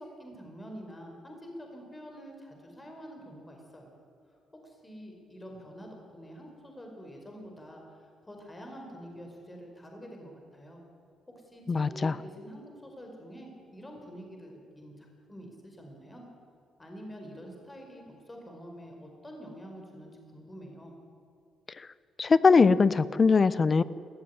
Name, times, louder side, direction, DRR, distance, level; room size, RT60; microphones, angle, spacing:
voice 1, 0.0-3.9 4.5-10.8 11.3-16.2 16.8-20.9, equal, 15° left, 1 dB, 4.9 m, -47 dB
voice 2, 11.7-12.1 22.2-23.8, left 4 dB, 35° left, 17 dB, 0.8 m, -21 dB
19.0 x 14.5 x 9.8 m, 2.4 s
cardioid pair, 90°, 0 cm